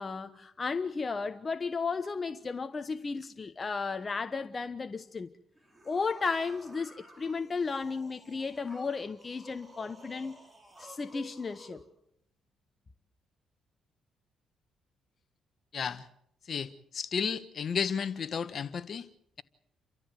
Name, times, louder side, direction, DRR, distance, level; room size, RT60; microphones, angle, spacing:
voice 1, 0.0-5.3 5.9-10.4 10.8-11.8, left 4 dB, 30° left, 1.0 m, -34 dB
sound 1, 5.5-11.9, right 1 dB, 20° right, 4.5 m, -53 dB
voice 2, 15.7-16.1 16.5-19.1, left 6 dB, 50° left, 1.3 m, -33 dB
29.5 x 13.5 x 8.1 m
cardioid pair, 90°, 0 cm